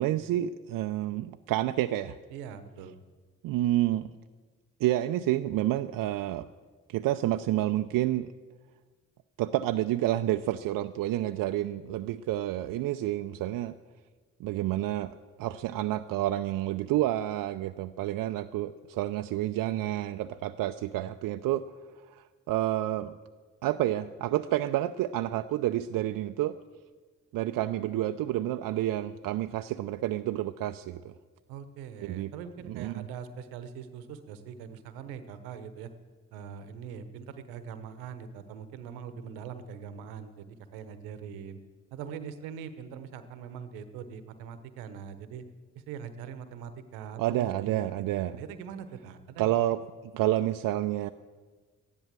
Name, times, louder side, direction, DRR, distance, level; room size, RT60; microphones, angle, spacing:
voice 1, 0.0-2.2 3.4-4.1 4.8-6.5 6.9-8.3 9.4-13.8 14.4-15.1 15.4-21.6 22.1-23.1 23.6-26.6 27.3-31.1 32.0-32.3 32.7-33.0 47.2-48.4 49.4-49.8 50.1-51.1, right 14 dB, 70° right, 8 dB, 0.5 m, -29 dB
voice 2, 2.3-2.9 31.5-35.9 36.3-41.6 41.9-45.4 45.7-49.6, right 7 dB, 85° right, 11 dB, 1.0 m, -42 dB
14.0 x 10.5 x 7.5 m, 1.4 s
hypercardioid pair, 45°, 35 cm